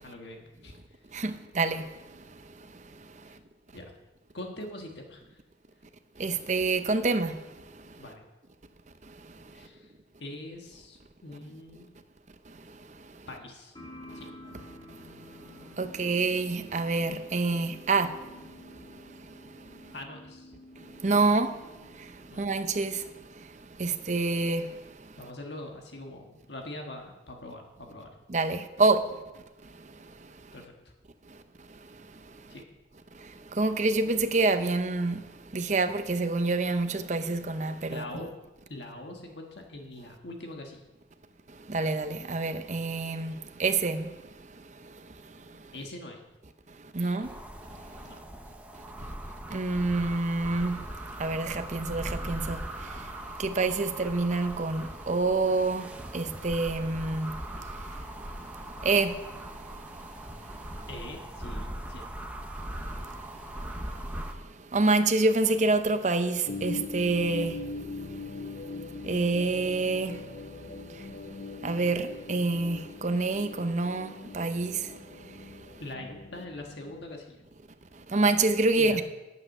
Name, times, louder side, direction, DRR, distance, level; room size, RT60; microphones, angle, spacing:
voice 1, 0.0-1.2 3.3-3.4 3.7-3.9 4.3-5.4 8.0-8.2 9.5-9.9 10.2-11.9 13.3-13.8 14.1-14.3 19.9-20.5 22.3-22.5 25.2-28.1 28.8-28.9 30.5-30.7 32.5-32.6 37.9-38.3 38.7-40.8 45.7-46.2 47.0-47.4 48.0-48.2 60.9-62.1 75.8-77.4 78.7-79.0, left 1 dB, 70° left, 1.5 m, -43 dB
voice 2, 1.1-1.8 6.2-7.3 15.8-18.1 21.0-21.5 22.4-23.0 23.8-24.6 28.3-29.0 33.6-35.2 35.5-38.1 41.7-43.3 43.6-44.1 46.9-47.3 49.5-50.8 51.2-52.6 53.4-55.8 56.1-57.3 58.8-59.1 64.7-67.5 69.0-70.2 71.6-74.8 78.1-79.0, right 3 dB, 40° right, 0.7 m, -26 dB
sound 1, 13.7-23.2, left 1 dB, 25° left, 2.1 m, -50 dB
sound 2, 47.2-64.3, right 1 dB, 10° right, 0.8 m, -40 dB
sound 3, 66.5-77.1, left 3 dB, 50° left, 0.7 m, -41 dB
9.9 x 8.5 x 6.6 m
head